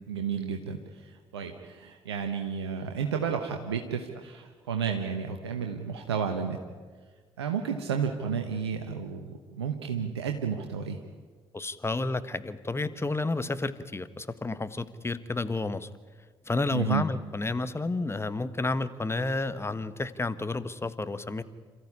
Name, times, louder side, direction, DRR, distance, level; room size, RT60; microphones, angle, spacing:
voice 1, 0.1-6.6 7.4-11.0 16.7-17.0, right 6 dB, 80° right, 4 dB, 1.1 m, -32 dB
voice 2, 11.5-15.9 16.4-21.4, left 2 dB, 20° left, 13 dB, 1.4 m, -31 dB
27.5 x 14.0 x 9.8 m, 1.5 s
figure-of-eight pair, 45°, 13 cm